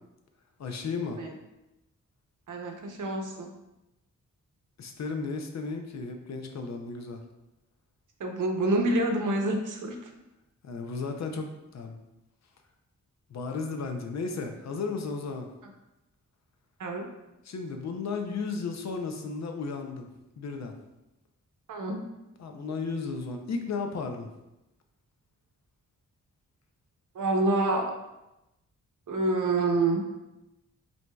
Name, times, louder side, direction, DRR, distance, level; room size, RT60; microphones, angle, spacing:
voice 1, 0.6-1.2 4.8-7.2 10.6-12.0 13.3-15.5 17.4-20.1 20.4-20.7 22.4-24.3, left 4 dB, 60° left, 4 dB, 0.5 m, -34 dB
voice 2, 2.5-3.5 8.2-10.0 16.8-17.1 21.7-22.0 27.1-27.9 29.1-30.0, right 2 dB, 70° right, 2 dB, 0.7 m, -27 dB
7.4 x 2.7 x 2.3 m, 0.95 s
wide cardioid pair, 175°, 32 cm